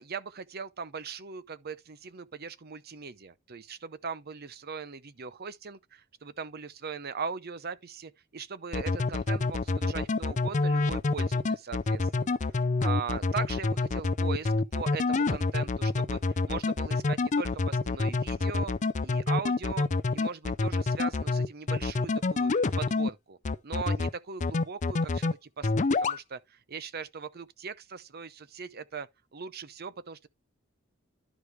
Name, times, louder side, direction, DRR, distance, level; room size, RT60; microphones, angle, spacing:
voice 1, 0.0-12.4 12.8-16.2 16.5-18.7 19.0-19.9 20.1-22.5 22.8-23.4 23.6-30.3, right 5 dB, 50° right, 0.7 m, -39 dB
sound 1, 8.7-23.1 23.4-24.1 24.4-25.3 25.6-26.2, left 3 dB, 35° left, 0.5 m, -27 dB
11.5 x 5.0 x 3.3 m
head